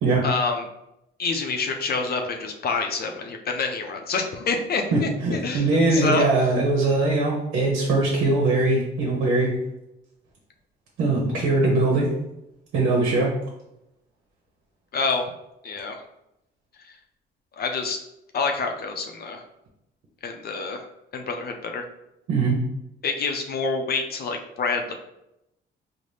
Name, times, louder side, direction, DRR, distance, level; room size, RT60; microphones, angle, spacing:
voice 1, 0.2-0.6 1.2-6.3 14.9-15.3 15.6-16.0 17.6-18.0 18.3-19.4 20.2-20.8 21.1-21.8 23.0-24.9, left 4 dB, 50° left, 4 dB, 0.5 m, -27 dB
voice 2, 4.9-9.5 11.0-12.1 12.7-13.3 22.3-22.6, right 2 dB, 85° right, -2 dB, 0.8 m, -21 dB
4.0 x 2.1 x 3.3 m, 0.85 s
cardioid pair, 90°, 20 cm